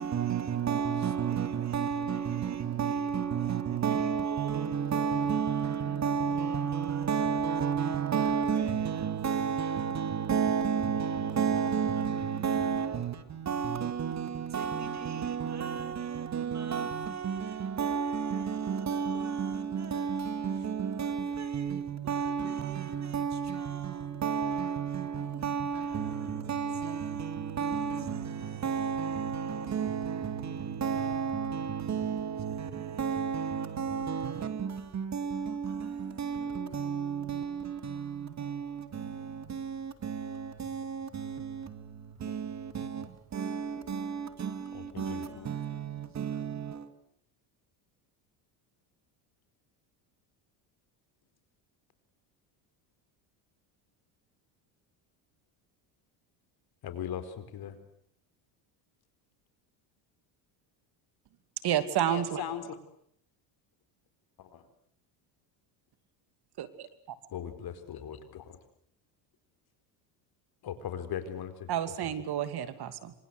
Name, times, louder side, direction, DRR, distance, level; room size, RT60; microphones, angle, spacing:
voice 1, 0.0-46.9, right 7 dB, 35° right, 2.4 m, -32 dB
voice 2, 44.7-45.5 56.8-57.8 62.1-62.8 64.4-64.6 67.3-68.6 70.6-72.2, left 9 dB, 50° left, 4.6 m, -39 dB
voice 3, 61.6-62.4 66.6-66.9 71.7-73.1, right 11 dB, 50° right, 2.8 m, -30 dB
28.0 x 26.0 x 8.0 m
cardioid pair, 115°, 48 cm